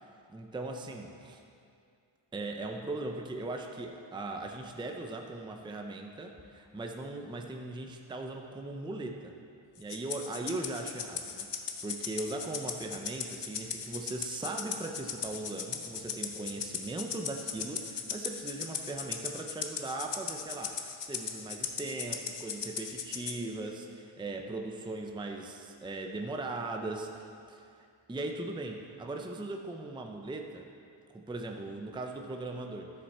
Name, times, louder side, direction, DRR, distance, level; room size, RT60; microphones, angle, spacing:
voice 1, 0.3-1.4 2.3-9.3 9.8-30.7 31.1-32.9, right 2 dB, 10° right, 3 dB, 0.5 m, -39 dB
Rattle (instrument), 9.9-23.4, left 7 dB, 60° left, 0.7 m, -38 dB
12.5 x 6.7 x 4.2 m, 2.4 s
wide cardioid pair, 150°, 47 cm